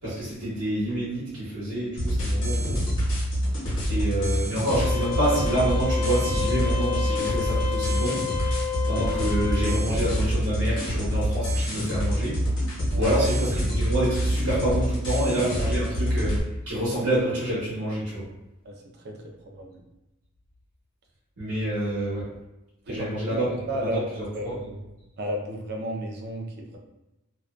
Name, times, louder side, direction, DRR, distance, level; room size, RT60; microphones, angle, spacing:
voice 1, 0.0-2.9 3.9-8.2 8.8-12.4 13.0-18.3 21.4-22.3 22.9-23.5 23.8-24.7, right 1 dB, 85° right, -9 dB, 0.9 m, -27 dB
sound 1, 2.0-16.4, equal, 55° left, 1.0 m, -26 dB
sound 2, 4.7-9.8, left 7 dB, 90° left, 0.4 m, -31 dB
voice 2, 12.9-13.2 18.6-18.7 19.0-19.8 22.9-23.1 23.5-24.1 24.3-24.6 25.2-26.8, equal, 45° right, 1 dB, 0.4 m, -32 dB
2.5 x 2.2 x 2.3 m, 0.97 s
head